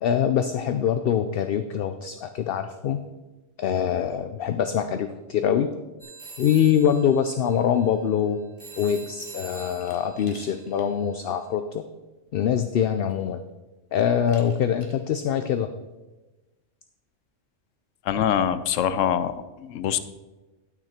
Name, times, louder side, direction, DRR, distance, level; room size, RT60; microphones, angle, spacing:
voice 1, 0.0-3.0 3.6-5.7 6.4-8.4 8.8-11.8 12.3-13.4 13.9-15.7, left 8 dB, 60° left, 9 dB, 0.6 m, -24 dB
sound 1, 6.0-11.5, right 3 dB, 55° right, 2.8 m, -45 dB
Glass, 9.8-10.9 11.3-11.4 12.5-12.6 13.1-13.5 14.3-15.1, left 2 dB, 25° left, 1.4 m, -51 dB
voice 2, 18.0-20.0, left 9 dB, 85° left, 13 dB, 1.0 m, -24 dB
11.5 x 6.4 x 4.3 m, 1.1 s
omnidirectional pair, 1.3 m